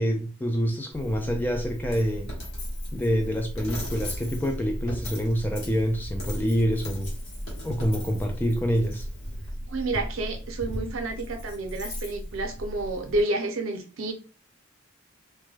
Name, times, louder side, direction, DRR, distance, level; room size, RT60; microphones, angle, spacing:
voice 1, 0.0-2.3 2.9-7.1 7.6-9.1, equal, 10° left, 0.3 m, -26 dB
Coin (dropping), 0.9-13.2, equal, 80° left, 1.0 m, -36 dB
voice 2, 9.7-14.1, right 2 dB, 85° right, 0.6 m, -30 dB
2.2 x 2.1 x 3.1 m
head